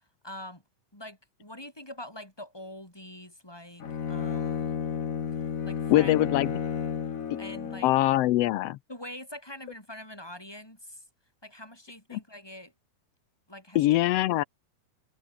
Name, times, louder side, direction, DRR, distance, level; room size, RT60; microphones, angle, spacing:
voice 1, 0.2-0.6 0.9-4.8 5.6-6.2 7.4-7.9 8.9-11.0 11.4-12.7 13.5-13.9 14.4-14.5, left 1 dB, 5° left, 5.8 m, -44 dB
Bowed string instrument, 3.8-8.0, left 7 dB, 65° left, 0.8 m, -32 dB
voice 2, 5.9-6.5 7.8-8.8 12.1-12.2 13.7-14.4, left 16 dB, 90° left, 1.3 m, -23 dB
omnidirectional pair, 3.7 m